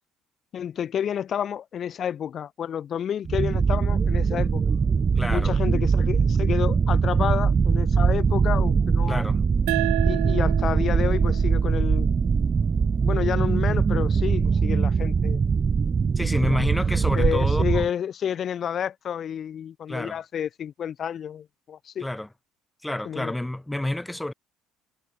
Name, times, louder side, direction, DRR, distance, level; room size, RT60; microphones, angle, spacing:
voice 1, 0.5-4.6 5.3-9.2 10.0-12.1 13.0-15.4 16.4-16.7 17.1-22.1 23.0-23.3, left 9 dB, 45° left, 2.6 m, -30 dB
sound 1, 3.2-17.9, right 5 dB, 35° right, 1.8 m, -22 dB
voice 2, 5.2-5.6 9.1-9.4 16.2-17.8 19.9-20.2 22.0-22.3 22.8-24.3, left 1 dB, 10° left, 3.7 m, -29 dB
sound 2, 9.7-12.9, right 29 dB, 65° right, 6.3 m, -32 dB
figure-of-eight pair, 55°, 0 cm